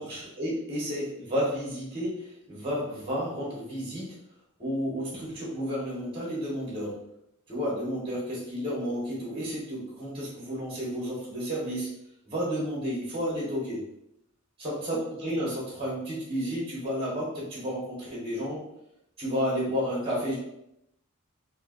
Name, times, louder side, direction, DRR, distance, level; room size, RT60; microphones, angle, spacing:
voice 1, 0.0-4.2 4.6-7.0 7.5-11.9 12.2-13.8 14.6-18.6 19.2-20.4, equal, 25° right, -5 dB, 1.3 m, -31 dB
4.3 x 2.8 x 2.6 m, 0.79 s
head